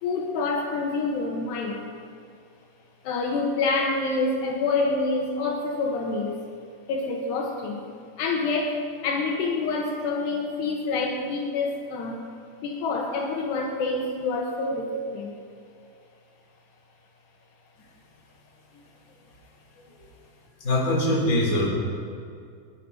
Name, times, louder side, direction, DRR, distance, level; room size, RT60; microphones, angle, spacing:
voice 1, 0.0-1.9 3.0-6.4 6.9-7.9 8.2-12.2 12.6-15.4, left 3 dB, 75° left, 0 dB, 3.4 m, -27 dB
voice 2, 20.6-21.7, left 1 dB, 20° left, -4 dB, 3.6 m, -22 dB
20.5 x 10.5 x 5.6 m, 2.4 s
omnidirectional pair, 5.0 m